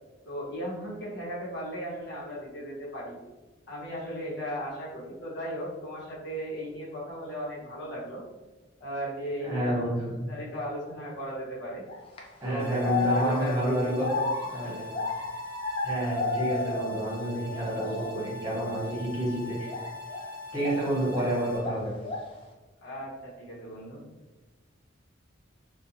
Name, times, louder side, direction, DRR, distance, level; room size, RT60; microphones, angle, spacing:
voice 1, 0.2-3.2 3.7-8.2 8.8-9.9 10.3-11.8 12.4-14.8 22.8-24.0, equal, 65° left, -6 dB, 0.9 m, -36 dB
voice 2, 9.4-10.0 12.4-14.0 14.5-14.8 15.8-19.7 20.5-21.9, right 1 dB, 20° right, -7 dB, 1.1 m, -29 dB
sound 1, 11.9-12.2 12.8-17.2 17.4-18.2 18.6-18.9 19.7-21.3 21.6-22.4, left 3 dB, 30° left, 0.4 m, -33 dB
sound 2, 12.6-21.6, left 3 dB, 60° right, 0.6 m, -42 dB
2.5 x 2.1 x 2.7 m, 1.2 s
head